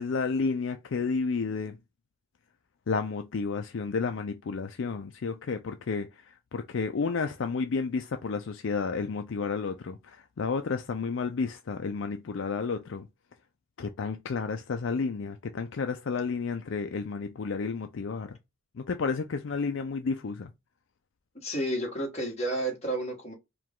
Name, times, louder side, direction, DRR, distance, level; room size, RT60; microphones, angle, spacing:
voice 1, 0.0-1.8 2.9-13.1 13.8-18.4 18.8-20.5, left 4 dB, 60° left, 0.4 m, -31 dB
voice 2, 21.3-23.3, right 1 dB, 30° left, 1.7 m, -31 dB
4.7 x 2.3 x 3.7 m
head